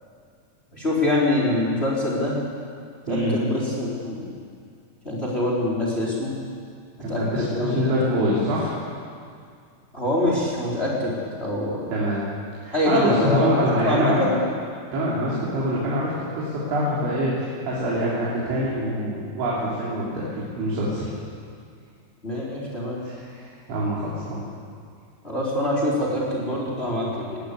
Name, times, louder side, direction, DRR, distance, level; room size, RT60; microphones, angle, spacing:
voice 1, 0.7-2.4 3.1-4.3 5.0-6.3 7.1-8.3 9.9-11.1 11.4-11.9 12.7-14.4 22.2-23.0 25.2-27.4, left 1 dB, 15° left, -4 dB, 3.8 m, -25 dB
voice 2, 7.0-8.7 11.9-12.2 12.6-14.2 14.9-21.1 23.0-24.4, equal, 80° right, -6 dB, 5.7 m, -25 dB
20.0 x 18.5 x 8.4 m, 2.2 s
omnidirectional pair, 5.3 m